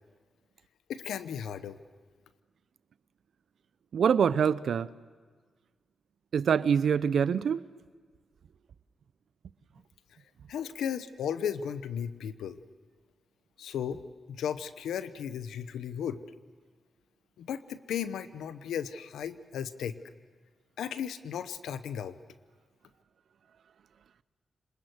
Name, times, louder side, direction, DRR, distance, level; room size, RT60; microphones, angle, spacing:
voice 1, 0.9-1.8 10.5-12.6 13.6-14.0 14.3-16.2 17.4-20.0 20.8-22.2, left 8 dB, 85° left, 0.9 m, -35 dB
voice 2, 3.9-4.9 6.3-7.6, right 7 dB, 75° right, 0.7 m, -25 dB
26.5 x 20.5 x 8.0 m
supercardioid pair, 45°, 0 cm